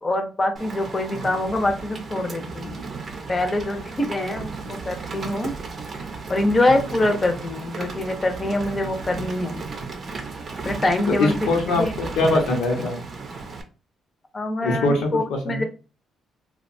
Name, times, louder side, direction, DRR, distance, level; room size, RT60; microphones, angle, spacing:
voice 1, 0.0-2.7 3.3-5.5 6.3-9.6 10.6-11.4 11.7-11.9 14.3-15.6, left 2 dB, 30° left, 5 dB, 0.5 m, -24 dB
Rain, 0.6-13.6, right 4 dB, 45° right, 0.5 m, -34 dB
voice 2, 11.2-13.0 14.6-15.6, left 2 dB, 90° left, 1 dB, 0.7 m, -22 dB
2.7 x 2.2 x 2.5 m, 0.33 s
cardioid pair, 90°, 0 cm